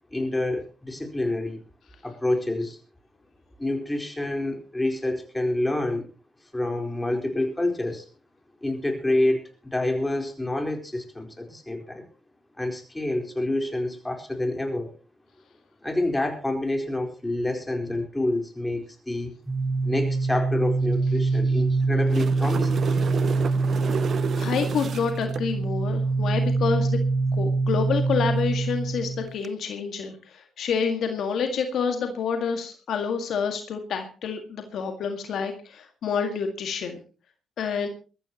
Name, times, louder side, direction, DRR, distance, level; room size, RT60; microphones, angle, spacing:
voice 1, 0.1-1.6 2.0-2.8 3.6-6.1 6.5-8.1 8.6-9.4 9.7-12.0 12.6-14.9 15.8-19.3 19.8-22.9, left 1 dB, 15° left, 4 dB, 4.3 m, -27 dB
sound 1, 19.5-29.2, right 3 dB, 15° right, 5.7 m, -24 dB
sound 2, 21.8-25.5 29.3-29.5, right 7 dB, 60° right, 0.6 m, -32 dB
voice 2, 24.4-27.0 27.4-37.0 37.6-37.9, left 6 dB, 70° left, 5 dB, 1.9 m, -28 dB
21.5 x 14.5 x 3.0 m, 0.36 s
hypercardioid pair, 45°, 0 cm